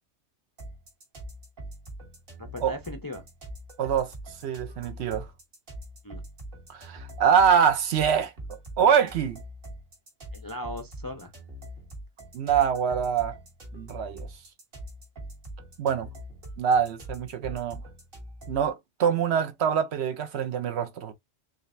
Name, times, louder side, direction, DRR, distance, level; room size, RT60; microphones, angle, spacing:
sound 1, 0.6-18.7, equal, 50° right, 1.4 m, -43 dB
voice 1, 2.4-3.2 6.0-6.2 10.3-11.3, left 1 dB, 30° left, 0.4 m, -37 dB
voice 2, 3.8-4.1 4.4-5.3 6.7-8.3 8.8-9.4 12.3-13.3 13.7-14.3 15.8-16.1 16.6-17.8 18.5-21.1, right 7 dB, 65° right, 0.8 m, -24 dB
3.8 x 3.2 x 2.5 m
omnidirectional pair, 1.3 m